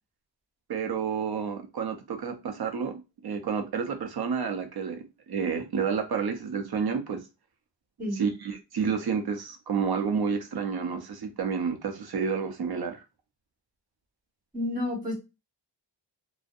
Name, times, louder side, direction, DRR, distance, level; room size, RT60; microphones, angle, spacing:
voice 1, 0.7-7.2 8.1-13.0, right 6 dB, 60° right, 0.6 m, -30 dB
voice 2, 14.5-15.1, left 1 dB, 20° right, 1.3 m, -30 dB
2.6 x 2.0 x 2.4 m
wide cardioid pair, 95°, 43 cm